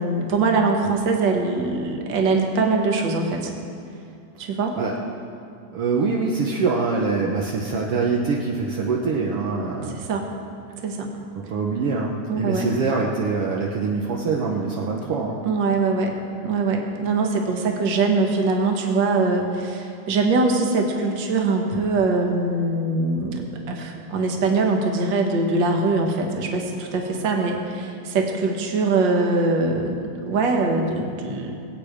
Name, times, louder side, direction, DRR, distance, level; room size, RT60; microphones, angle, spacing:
voice 1, 0.0-3.5 4.4-4.8 9.8-10.3 10.8-11.1 12.3-12.7 15.4-16.1 16.4-31.6, right 3 dB, 55° right, 2 dB, 1.3 m, -22 dB
voice 2, 5.7-10.0 11.4-15.4, right 4 dB, 75° right, -2 dB, 1.3 m, -24 dB
20.0 x 8.7 x 5.0 m, 2.5 s
omnidirectional pair, 3.9 m